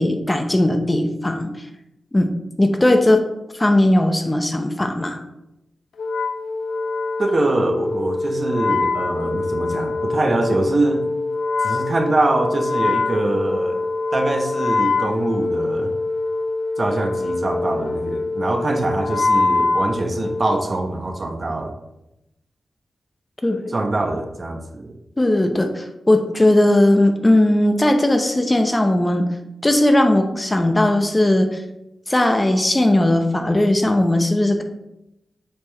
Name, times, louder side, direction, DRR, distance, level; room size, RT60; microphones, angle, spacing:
voice 1, 0.0-1.5 2.1-2.3 2.6-3.2 3.5-5.2 23.4-23.7 25.2-29.2 29.6-31.6 32.1-34.6, left 1 dB, 20° left, 5 dB, 0.7 m, -17 dB
Wind instrument woodwind instrument, 6.0-20.7, left 3 dB, 75° left, 0.4 m, -24 dB
voice 2, 7.2-11.1 11.6-13.8 14.1-15.9 16.8-21.7 23.7-24.9, right 2 dB, 40° right, 4 dB, 0.9 m, -23 dB
7.4 x 4.5 x 2.9 m, 0.89 s
cardioid pair, 60°, 0 cm